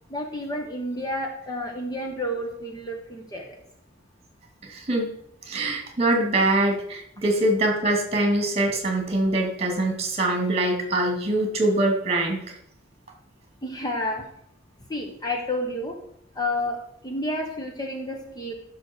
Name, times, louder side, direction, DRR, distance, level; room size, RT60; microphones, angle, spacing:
voice 1, 0.1-3.5 13.6-14.2 14.9-16.0 16.3-16.8 17.0-18.5, left 1 dB, 20° left, 2 dB, 1.2 m, -30 dB
voice 2, 4.7-5.1 5.5-12.4, right 1 dB, 35° right, 2 dB, 2.6 m, -23 dB
14.0 x 6.2 x 4.6 m, 0.72 s
head